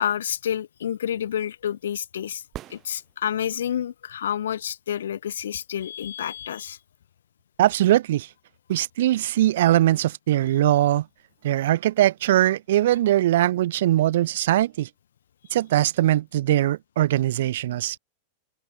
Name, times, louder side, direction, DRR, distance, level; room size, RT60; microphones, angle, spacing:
voice 1, 0.0-2.4 2.7-6.8, left 9 dB, 70° left, 2.5 m, -29 dB
sound 1, 2.5-3.7 7.5-7.6, right 14 dB, 35° right, 7.7 m, -42 dB
voice 2, 7.6-8.3 8.7-11.0 11.4-14.9 15.5-18.0, right 13 dB, 65° right, 0.5 m, -21 dB
figure-of-eight pair, 90°, 0 cm